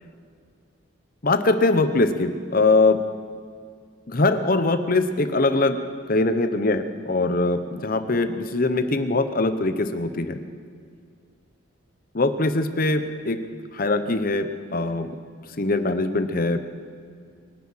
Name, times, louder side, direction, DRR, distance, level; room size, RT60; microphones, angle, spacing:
voice 1, 1.2-3.0 4.1-5.8 6.1-10.4 12.1-13.4 13.7-15.2 15.6-16.6, left 2 dB, 45° left, 9 dB, 0.9 m, -22 dB
24.5 x 9.6 x 5.8 m, 2.2 s
head